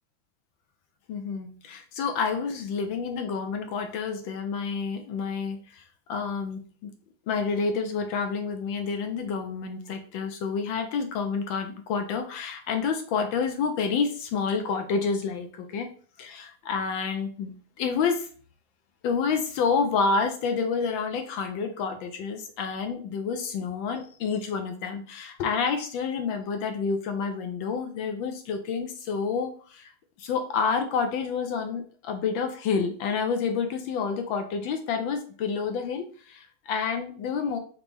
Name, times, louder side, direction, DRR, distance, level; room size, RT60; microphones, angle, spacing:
voice 1, 1.1-5.8 6.1-6.9 7.3-15.9 16.2-18.3 19.0-29.9 30.2-37.6, left 5 dB, 75° left, 6 dB, 1.2 m, -29 dB
5.0 x 3.1 x 3.4 m, 0.43 s
omnidirectional pair, 2.4 m